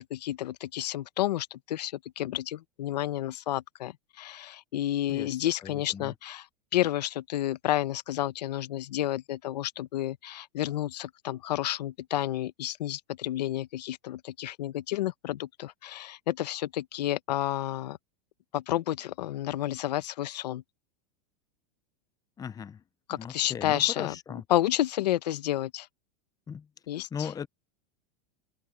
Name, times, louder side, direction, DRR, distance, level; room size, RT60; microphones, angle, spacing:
voice 1, 0.0-6.5 6.7-18.0 18.5-20.6 23.1-25.9 26.9-27.3, left 13 dB, 85° left, 1.1 m, -31 dB
voice 2, 5.6-6.1 22.4-22.8 23.1-24.4 26.5-26.7 27.1-27.5, left 7 dB, 15° left, 0.8 m, -38 dB
supercardioid pair, 125°, 21 cm